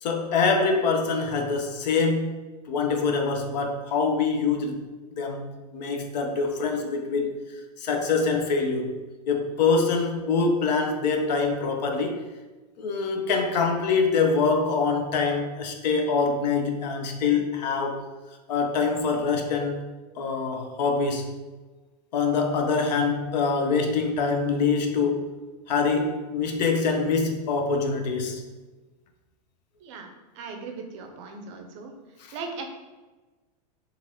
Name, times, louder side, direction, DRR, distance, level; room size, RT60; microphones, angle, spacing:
voice 1, 0.0-2.4 2.7-4.9 5.2-7.3 7.8-8.9 9.3-12.2 12.8-18.0 18.5-19.8 20.2-21.4 22.1-25.3 25.7-28.4 32.2-32.3, left 4 dB, 80° left, 3 dB, 0.6 m, -24 dB
voice 2, 30.3-31.9 32.3-32.6, right 4 dB, 45° right, 3 dB, 0.5 m, -38 dB
3.1 x 2.5 x 2.7 m, 1.2 s
supercardioid pair, 155°, 21 cm